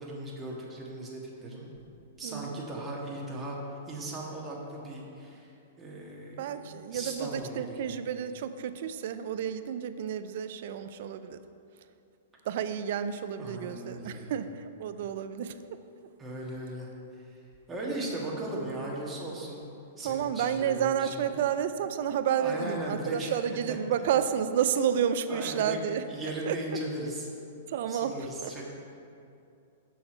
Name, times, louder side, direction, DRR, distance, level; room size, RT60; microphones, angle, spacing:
voice 1, 0.0-1.7 2.2-3.6 3.9-5.5 5.8-8.0 13.3-14.3 16.2-16.9 17.7-19.6 20.0-21.4 22.4-23.3 23.7-23.8 25.3-25.8 26.1-27.3 27.9-28.6, right 1 dB, 15° right, -3 dB, 1.6 m, -37 dB
voice 2, 2.2-2.6 6.4-11.4 12.5-15.8 20.0-26.6 27.7-28.1 28.4-28.5, right 8 dB, 60° right, 11 dB, 0.4 m, -31 dB
6.6 x 6.3 x 4.4 m, 2.6 s
hypercardioid pair, 125°, 0 cm